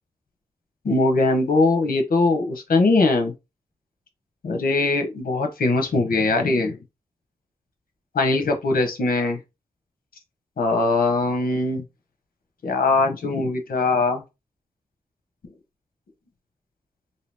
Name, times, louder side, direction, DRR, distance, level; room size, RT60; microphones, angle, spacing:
voice 1, 0.8-3.3 4.4-6.8 8.1-9.4 10.6-11.8 12.6-14.2, left 3 dB, 70° left, 0.9 m, -21 dB
2.9 x 2.8 x 3.4 m
wide cardioid pair, 165°, 15 cm